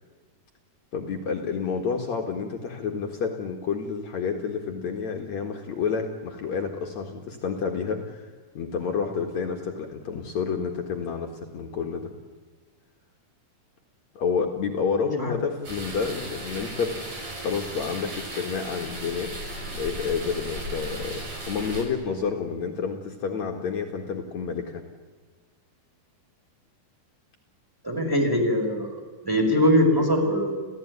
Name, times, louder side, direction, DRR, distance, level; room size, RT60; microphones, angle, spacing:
voice 1, 0.9-12.1 14.1-17.0 17.4-19.3 19.7-24.8, left 5 dB, 55° left, 2 dB, 3.0 m, -29 dB
sound 1, 15.6-21.8, right 1 dB, 85° right, 9.1 m, -36 dB
voice 2, 27.8-28.9 29.2-30.6, equal, 5° right, 0 dB, 4.9 m, -22 dB
30.0 x 16.0 x 9.6 m, 1.5 s
omnidirectional pair, 3.9 m